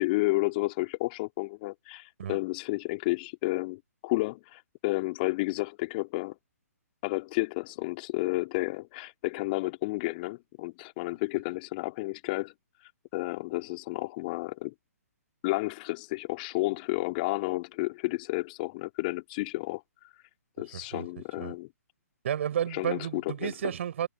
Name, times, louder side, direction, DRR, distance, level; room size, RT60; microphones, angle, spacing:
voice 1, 0.0-6.4 7.0-12.5 13.1-14.7 15.4-19.8 20.6-21.7 22.7-23.5, left 22 dB, 35° left, 3.3 m, -31 dB
voice 2, 20.7-21.1 21.4-21.5 22.2-24.1, right 9 dB, 50° right, 5.5 m, -32 dB
figure-of-eight pair, 130°, 9 cm